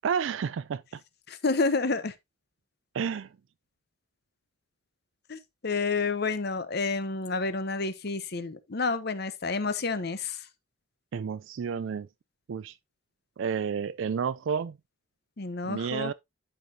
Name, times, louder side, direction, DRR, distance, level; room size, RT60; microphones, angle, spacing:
voice 1, 0.0-1.0 2.9-3.3 11.1-12.1 12.5-12.8 13.4-14.8 15.7-16.1, right 6 dB, 75° right, 0.4 m, -30 dB
voice 2, 1.3-2.1 5.3-10.4 15.4-16.1, left 4 dB, 55° left, 0.9 m, -29 dB
12.0 x 5.0 x 2.7 m
head